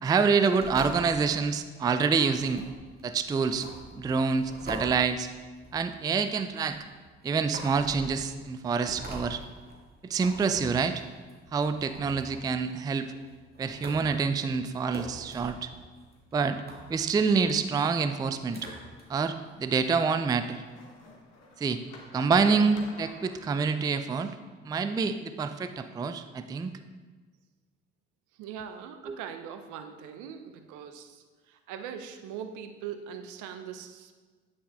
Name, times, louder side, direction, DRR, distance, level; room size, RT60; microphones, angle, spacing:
voice 1, 0.0-2.7 3.0-3.7 4.0-5.3 5.7-6.9 7.2-9.4 10.0-11.0 11.5-13.1 13.6-15.7 16.3-16.6 16.9-18.7 19.1-20.6 21.6-21.8 22.1-24.3 24.7-26.7 29.1-29.2, right 5 dB, 10° right, 10 dB, 0.3 m, -27 dB
sound 1, 0.6-19.0, right 1 dB, 30° right, 2.1 m, -44 dB
sound 2, 17.3-23.6, left 2 dB, 50° left, 1.5 m, -49 dB
voice 2, 28.4-34.1, right 8 dB, 65° right, 8 dB, 0.7 m, -41 dB
9.4 x 6.1 x 2.5 m, 1.4 s
hypercardioid pair, 50°, 33 cm